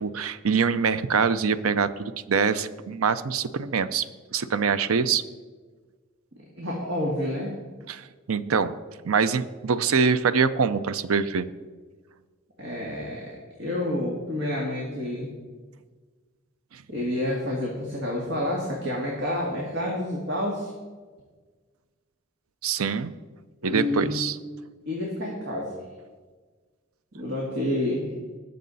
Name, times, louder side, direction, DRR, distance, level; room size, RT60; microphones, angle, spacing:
voice 1, 0.0-4.0 4.3-5.2 7.9-8.7 9.0-11.4 16.7-16.8 22.6-23.1 23.6-24.4, right 6 dB, 85° right, 14 dB, 0.6 m, -24 dB
voice 2, 6.6-7.5 12.6-15.3 16.9-20.7 23.6-24.2 24.9-25.7 27.1-28.1, left 1 dB, 55° right, -2 dB, 1.9 m, -29 dB
19.5 x 6.6 x 4.1 m, 1.4 s
head